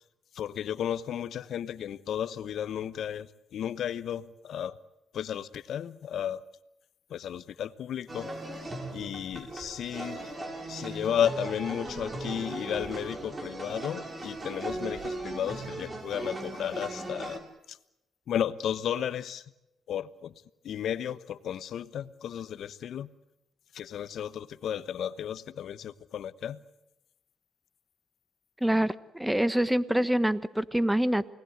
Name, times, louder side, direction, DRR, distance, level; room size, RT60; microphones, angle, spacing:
voice 1, 0.3-4.8 5.1-6.5 7.1-8.3 8.9-10.2 10.7-17.4 17.7-17.8 18.3-19.4 19.9-20.3 20.6-23.1 23.7-26.6, left 9 dB, 65° left, 1.1 m, -33 dB
sound 1, 8.1-17.4, right 2 dB, 25° right, 5.4 m, -38 dB
voice 2, 28.6-31.3, right 1 dB, 5° right, 1.2 m, -26 dB
28.5 x 19.5 x 8.0 m
cardioid pair, 90°, 0 cm